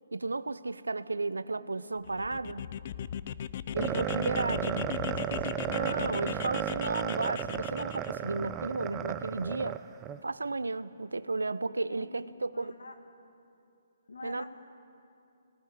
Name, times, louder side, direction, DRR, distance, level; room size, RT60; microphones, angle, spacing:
voice 1, 0.1-2.7 3.7-4.8 5.7-9.8 10.2-12.7 14.2-14.4, right 3 dB, 85° right, 16 dB, 0.7 m, -33 dB
voice 2, 1.5-1.9 4.4-6.2 11.9-13.0 14.1-14.5, left 2 dB, 75° left, 5 dB, 2.2 m, -46 dB
sound 1, 2.0-8.1, left 9 dB, 45° left, 0.5 m, -38 dB
sound 2, 3.8-10.2, right 10 dB, 20° right, 0.6 m, -34 dB
19.5 x 15.0 x 9.7 m, 2.6 s
figure-of-eight pair, 140°, 0 cm